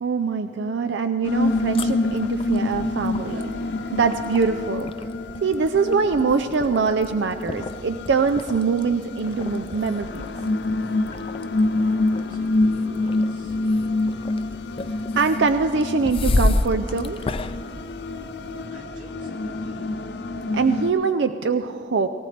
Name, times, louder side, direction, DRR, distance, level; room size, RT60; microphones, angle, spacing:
voice 1, 0.0-4.9 5.4-10.3 14.8-17.3 20.5-22.1, right 4 dB, 85° right, 8 dB, 0.5 m, -23 dB
sound 1, 1.2-20.9, left 2 dB, 75° left, 0.7 m, -27 dB
sound 2, 1.4-18.6, left 2 dB, 30° left, 0.4 m, -32 dB
voice 2, 11.5-13.6 18.4-20.0, equal, 50° right, -3 dB, 2.8 m, -48 dB
19.0 x 18.5 x 3.3 m, 2.4 s
head